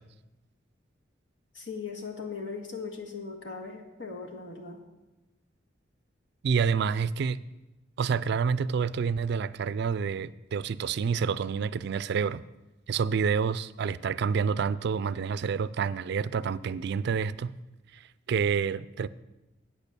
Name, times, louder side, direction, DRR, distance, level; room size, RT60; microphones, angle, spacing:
voice 1, 1.5-4.8, left 4 dB, 70° left, 2 dB, 1.8 m, -39 dB
voice 2, 6.4-7.4 8.0-12.4 12.9-17.5 17.9-19.1, right 6 dB, 60° right, 17 dB, 0.4 m, -28 dB
8.7 x 8.3 x 6.8 m, 1.0 s
head